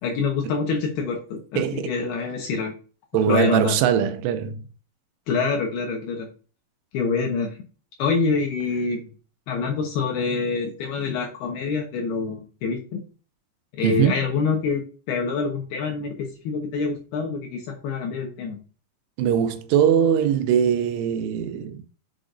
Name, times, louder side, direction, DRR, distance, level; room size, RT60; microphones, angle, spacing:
voice 1, 0.0-2.7 3.3-3.7 5.3-6.3 6.9-7.6 8.0-9.1 9.5-13.0 13.7-18.6, left 4 dB, 70° left, 2.5 m, -26 dB
voice 2, 1.6-1.9 3.1-4.6 13.8-14.2 19.2-21.8, right 8 dB, 80° right, 3.1 m, -21 dB
7.4 x 6.4 x 2.6 m
omnidirectional pair, 5.8 m